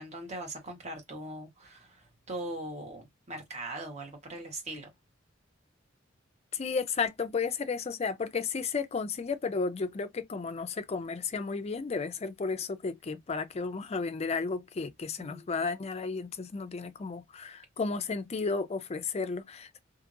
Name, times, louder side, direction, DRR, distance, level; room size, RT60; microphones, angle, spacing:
voice 1, 0.0-4.9 15.2-15.5, right 1 dB, 35° right, 1.2 m, -40 dB
voice 2, 6.5-19.8, left 4 dB, 30° left, 0.4 m, -33 dB
2.7 x 2.5 x 2.5 m
head